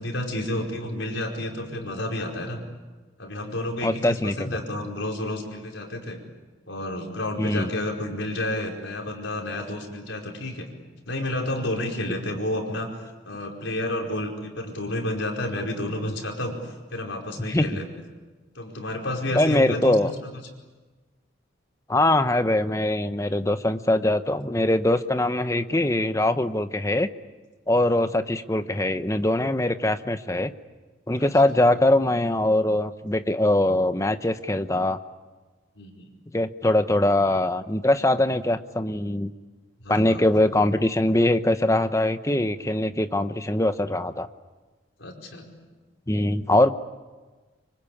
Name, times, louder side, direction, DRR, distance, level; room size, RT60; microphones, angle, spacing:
voice 1, 0.0-2.6 3.2-6.2 6.7-10.7 11.1-12.9 13.2-17.9 18.5-20.3 27.8-27.9 31.2-31.3 35.8-36.1 39.8-40.2 45.0-45.5, left 1 dB, 75° left, 1 dB, 5.0 m, -30 dB
voice 2, 3.8-4.5 7.4-7.7 17.5-17.8 19.3-20.1 21.9-27.1 27.7-30.5 31.1-35.0 36.3-39.3 39.9-44.3 46.1-46.7, left 1 dB, 15° left, 10 dB, 0.9 m, -22 dB
25.5 x 25.5 x 8.7 m, 1.3 s
head